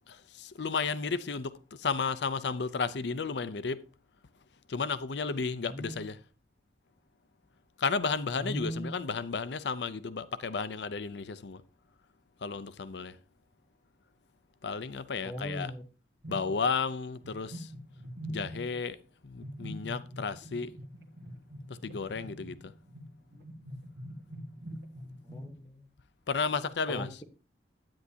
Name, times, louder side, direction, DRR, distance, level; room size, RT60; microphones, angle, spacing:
voice 1, 0.1-3.8 4.7-6.2 7.8-11.6 12.4-13.2 14.6-15.7 16.3-17.7 18.3-20.7 21.7-22.7 26.3-27.2, left 5 dB, 80° left, 0.6 m, -33 dB
voice 2, 5.6-6.0 8.4-8.9 15.2-15.8 23.3-23.4 25.2-25.7 26.9-27.2, equal, 20° left, 1.1 m, -38 dB
sound 1, 16.2-16.9 17.2-18.9 19.4-25.5, equal, 70° right, 1.7 m, -44 dB
10.5 x 9.5 x 2.8 m
head